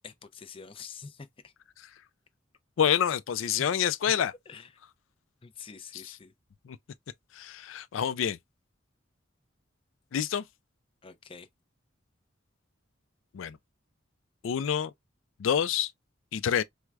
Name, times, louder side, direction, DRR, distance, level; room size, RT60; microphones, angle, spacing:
voice 1, 0.0-1.5 3.6-3.7 4.1-4.2 4.5-4.7 5.4-6.3 11.0-11.5, left 5 dB, 30° left, 0.5 m, -46 dB
voice 2, 2.8-4.3 6.7-6.8 7.3-8.4 10.1-10.4 13.3-13.6 14.4-14.9 15.4-15.9 16.3-16.6, left 8 dB, 85° left, 0.4 m, -27 dB
4.5 x 2.1 x 2.3 m
head